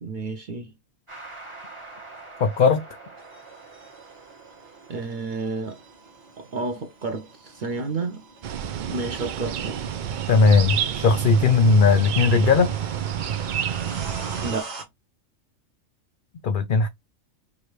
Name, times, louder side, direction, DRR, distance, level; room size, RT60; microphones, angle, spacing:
voice 1, 0.0-0.7 4.9-5.8 6.4-8.2 8.9-9.8 14.4-14.7, right 3 dB, 50° right, 0.7 m, -30 dB
sound 1, 1.1-14.6, right 3 dB, 25° right, 1.2 m, -46 dB
voice 2, 2.4-2.8 10.3-12.7 16.4-16.9, left 4 dB, 70° left, 0.4 m, -18 dB
sound 2, 2.8-2.9 3.2-14.8, right 4 dB, 65° right, 1.2 m, -45 dB
sound 3, 8.4-14.5, right 9 dB, 80° right, 0.4 m, -29 dB
4.8 x 2.7 x 3.2 m
omnidirectional pair, 1.4 m